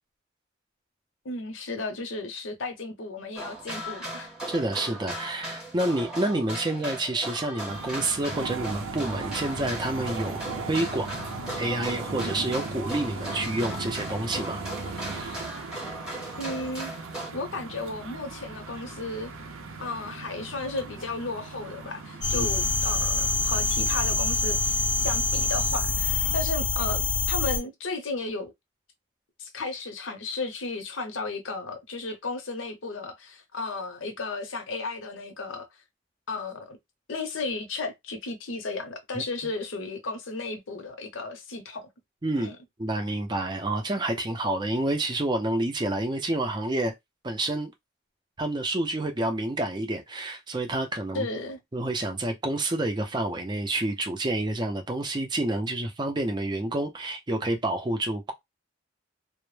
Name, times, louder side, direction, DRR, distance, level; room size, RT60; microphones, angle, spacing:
voice 1, 1.2-4.3 16.4-16.9 17.3-19.3 19.8-28.5 29.4-35.7 36.3-36.8 37.1-41.9 42.4-42.6 51.1-51.6, left 3 dB, 75° left, 0.7 m, -34 dB
sound 1, 3.3-17.3, right 1 dB, 5° right, 0.8 m, -38 dB
voice 2, 4.5-10.4 10.7-11.1 11.6-15.4 22.3-22.5 39.1-39.2 42.2-42.5 42.8-46.9 47.2-47.7 48.4-51.3 51.7-58.3, right 1 dB, 20° right, 0.4 m, -29 dB
sound 2, 7.7-26.4, right 3 dB, 90° right, 0.6 m, -38 dB
sound 3, 22.2-27.6, left 3 dB, 40° left, 0.5 m, -25 dB
2.1 x 2.0 x 3.1 m
head